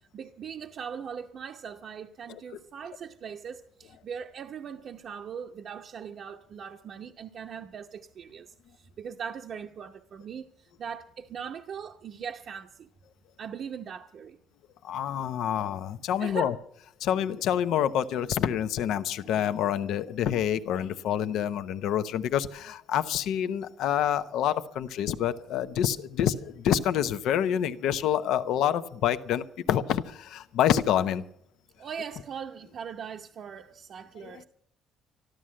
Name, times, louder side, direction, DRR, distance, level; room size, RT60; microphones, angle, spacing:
voice 1, 0.1-12.9 13.4-14.4 16.2-16.5 31.8-34.4, right 7 dB, 55° right, 0.8 m, -40 dB
voice 2, 14.8-16.5 17.0-31.2 34.2-34.4, left 10 dB, 75° left, 0.8 m, -27 dB
13.0 x 12.5 x 7.6 m
cardioid pair, 100°, 0 cm